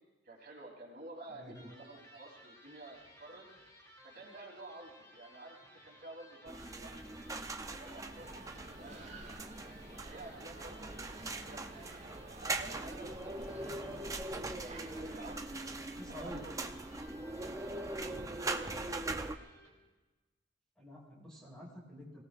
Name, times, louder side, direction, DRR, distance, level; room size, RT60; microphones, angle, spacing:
voice 1, 0.2-3.4 4.0-7.2 7.6-9.4 10.1-11.9 12.4-13.5 14.9-16.7 17.4-19.4, right 2 dB, 55° right, -1 dB, 3.4 m, -52 dB
voice 2, 1.3-1.7 13.5-14.0 16.0-16.4 18.1-18.3 20.8-22.2, equal, 5° left, -4 dB, 6.1 m, -49 dB
Electric guitar, 1.5-19.9, equal, 20° left, 3.1 m, -58 dB
sound 1, 6.5-19.4, right 2 dB, 20° right, 0.7 m, -41 dB
sound 2, 8.2-15.4, right 2 dB, 40° right, 1.4 m, -52 dB
29.0 x 18.0 x 2.5 m, 1.2 s
head